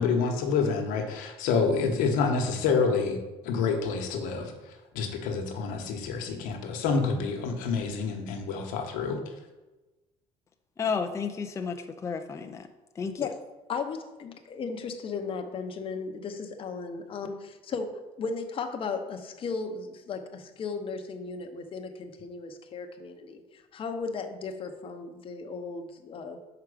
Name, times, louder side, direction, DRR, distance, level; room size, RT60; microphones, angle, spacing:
voice 1, 0.0-3.2 3.4-9.2, left 5 dB, 85° left, 3 dB, 1.1 m, -28 dB
voice 2, 10.8-12.7 13.0-13.3, left 5 dB, 20° left, 6 dB, 0.4 m, -32 dB
voice 3, 13.7-26.4, left 4 dB, 40° left, 5 dB, 0.8 m, -36 dB
5.8 x 4.7 x 5.0 m, 1.1 s
cardioid pair, 105°, 14 cm